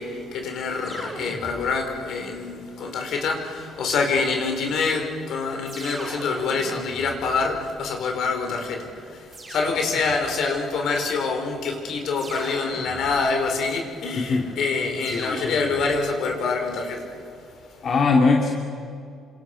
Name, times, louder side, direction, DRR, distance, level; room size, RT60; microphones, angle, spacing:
voice 1, 0.0-17.8, left 4 dB, 70° left, 3 dB, 5.4 m, -26 dB
sound 1, 0.8-2.0 3.6-4.4 5.7-8.0 9.3-10.4 12.2-13.5 15.0-16.2, right 2 dB, 30° right, 5.5 m, -40 dB
voice 2, 14.1-14.5 15.1-15.7 17.8-18.5, left 4 dB, 45° left, 0 dB, 2.8 m, -21 dB
29.0 x 26.5 x 6.4 m, 2.3 s
cardioid pair, 120°, 0 cm